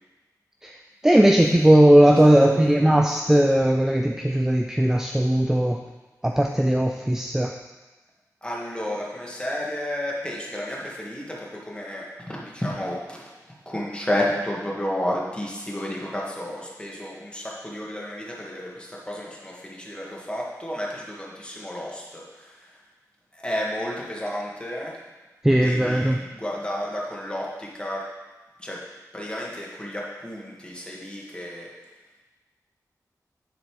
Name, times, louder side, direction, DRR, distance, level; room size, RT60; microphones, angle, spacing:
voice 1, 1.0-5.8 6.2-7.5 25.4-26.2, right 1 dB, 5° right, 3 dB, 0.5 m, -18 dB
voice 2, 2.2-2.8 8.4-13.3 13.6-22.2 23.3-24.9 25.5-28.0 28.6-28.8 29.1-31.7, left 1 dB, 15° left, -3 dB, 1.8 m, -31 dB
10.5 x 4.0 x 4.7 m, 1.2 s
wide cardioid pair, 70°, 7 cm